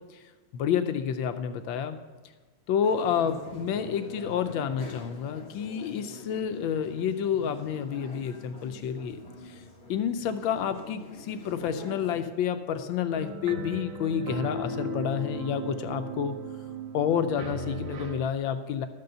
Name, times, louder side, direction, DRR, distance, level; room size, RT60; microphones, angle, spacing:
voice 1, 0.5-2.0 2.7-9.2 9.4-9.5 9.9-16.4 16.9-18.9, left 8 dB, 75° left, 9 dB, 1.3 m, -29 dB
sound 1, 2.8-12.2, left 2 dB, 35° left, 1.5 m, -44 dB
sound 2, 13.1-18.2, right 2 dB, 85° right, 2.0 m, -36 dB
12.0 x 5.3 x 6.7 m, 1.3 s
omnidirectional pair, 2.3 m